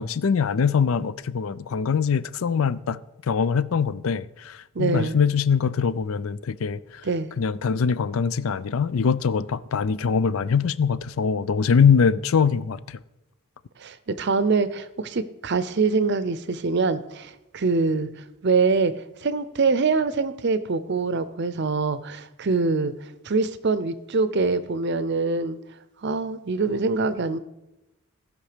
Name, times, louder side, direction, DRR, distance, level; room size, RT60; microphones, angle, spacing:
voice 1, 0.0-3.0 3.3-6.8 7.4-13.0, left 6 dB, 70° left, 0.4 m, -23 dB
voice 2, 4.7-5.2 7.0-7.3 13.8-18.1 18.4-18.9 19.2-22.9 23.2-25.6 26.0-27.4, right 4 dB, 50° right, 0.6 m, -24 dB
16.0 x 5.4 x 5.0 m
head